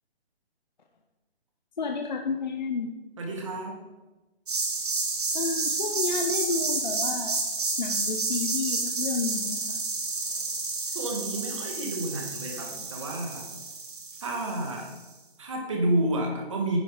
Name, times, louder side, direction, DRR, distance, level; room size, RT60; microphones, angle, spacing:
voice 1, 1.8-2.9 5.3-7.4 7.8-9.8, left 4 dB, 45° left, 3 dB, 0.7 m, -31 dB
voice 2, 3.2-3.8 10.9-13.5 14.2-14.9 15.4-16.8, right 1 dB, 30° right, 1 dB, 1.6 m, -30 dB
sound 1, 4.5-15.0, right 3 dB, 50° right, 2.0 m, -30 dB
10.0 x 7.3 x 5.0 m, 1.1 s
hypercardioid pair, 180°, 32 cm